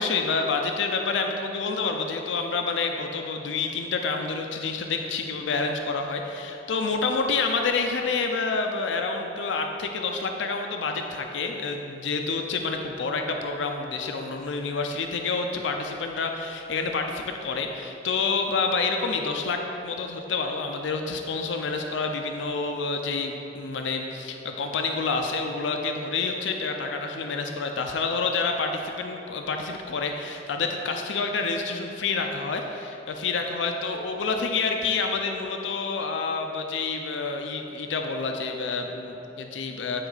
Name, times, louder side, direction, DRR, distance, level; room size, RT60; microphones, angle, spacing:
voice 1, 0.0-40.1, left 4 dB, 70° left, 4 dB, 0.5 m, -28 dB
9.8 x 4.5 x 4.0 m, 3.0 s
head